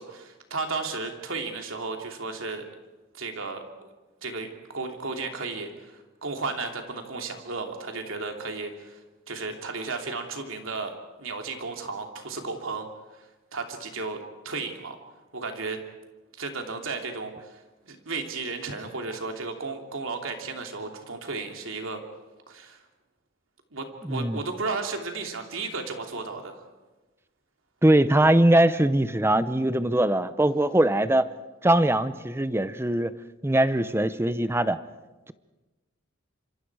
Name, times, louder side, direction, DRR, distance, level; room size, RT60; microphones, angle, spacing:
voice 1, 0.0-2.6 3.1-3.9 4.2-9.0 9.3-10.9 11.2-12.9 13.5-15.0 15.3-15.8 16.4-17.6 17.8-22.0 22.5-22.8 23.7-26.6, right 3 dB, 80° right, 3 dB, 2.9 m, -34 dB
voice 2, 24.0-24.4 27.8-31.3 31.6-33.1 33.4-34.8, right 1 dB, 10° right, 14 dB, 0.6 m, -21 dB
27.0 x 26.0 x 4.8 m, 1.1 s
head